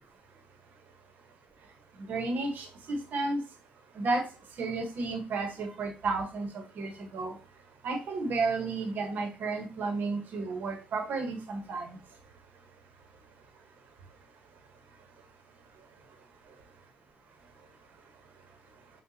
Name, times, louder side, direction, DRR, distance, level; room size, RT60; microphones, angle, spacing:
voice 1, 2.1-3.4 4.0-4.2 4.6-6.5 6.8-7.3 7.8-12.0, right 3 dB, 65° right, 4 dB, 1.2 m, -32 dB
6.1 x 2.5 x 2.8 m, 0.33 s
supercardioid pair, 75°, 3 cm